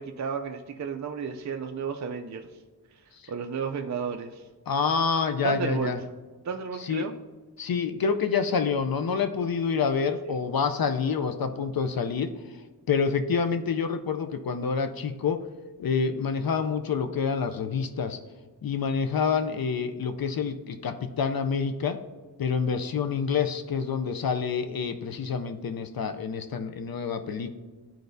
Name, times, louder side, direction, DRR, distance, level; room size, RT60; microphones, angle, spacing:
voice 1, 0.0-2.5 3.3-4.5 5.4-5.9 6.4-7.1, right 6 dB, 45° right, 4 dB, 0.5 m, -32 dB
voice 2, 4.7-6.0 6.8-7.1 7.6-12.3 12.9-15.4 15.8-18.2 18.6-22.0 22.4-27.5, left 6 dB, 60° left, 8 dB, 0.6 m, -27 dB
11.5 x 4.6 x 2.6 m, 1.3 s
wide cardioid pair, 105°, 42 cm